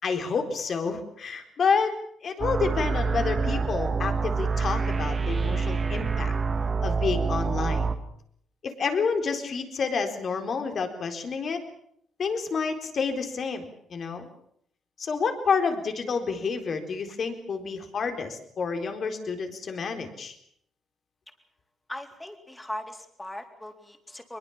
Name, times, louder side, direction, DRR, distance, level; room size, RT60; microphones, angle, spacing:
voice 1, 0.0-1.9 2.2-6.3 6.8-7.9 8.6-11.6 12.2-14.3 15.0-20.3, left 5 dB, 50° left, 6 dB, 4.1 m, -29 dB
sound 1, 2.4-7.9, right 4 dB, 35° right, 2.0 m, -26 dB
voice 2, 21.9-24.4, left 1 dB, 10° left, 5 dB, 3.9 m, -39 dB
22.5 x 22.0 x 7.3 m, 0.69 s
cardioid pair, 90°, 0 cm